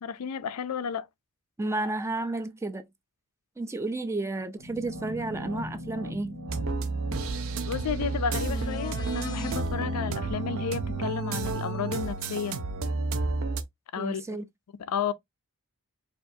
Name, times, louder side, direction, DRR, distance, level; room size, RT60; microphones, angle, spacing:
voice 1, 0.0-1.1 7.7-12.6 13.9-14.4 14.9-15.1, left 7 dB, 80° left, 0.4 m, -32 dB
voice 2, 1.6-2.8 3.6-6.4 14.0-14.5, right 2 dB, 10° right, 0.3 m, -32 dB
sound 1, 4.6-13.5, left 1 dB, 85° right, 1.2 m, -41 dB
sound 2, 6.5-13.6, right 3 dB, 65° right, 0.5 m, -31 dB
sound 3, 8.3-9.6 13.4-13.5, left 3 dB, 20° left, 0.7 m, -39 dB
4.4 x 2.4 x 2.6 m
head